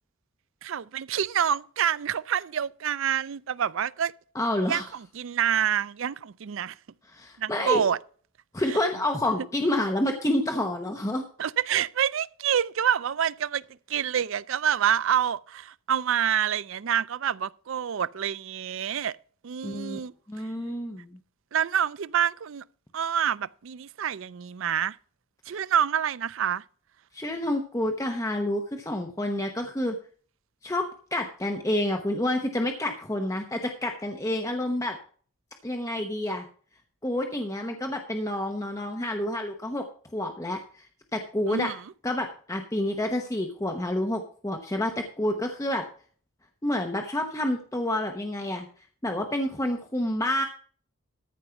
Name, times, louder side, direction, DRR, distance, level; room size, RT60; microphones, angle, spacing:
voice 1, 0.6-4.1 4.7-6.8 7.4-8.0 8.7-8.8 11.4-19.2 19.4-20.1 21.5-22.6 22.9-25.0 25.5-26.6 41.5-41.8, right 9 dB, 65° right, 0.4 m, -27 dB
voice 2, 4.3-4.9 7.1-7.8 8.5-11.2 19.6-20.0 20.3-21.2 27.1-30.0 30.6-35.0 35.6-36.5 37.0-39.9 40.1-40.8 41.1-41.7 42.0-45.8 46.6-48.7 49.0-50.4, left 1 dB, 15° left, 0.9 m, -28 dB
14.0 x 5.3 x 5.7 m
head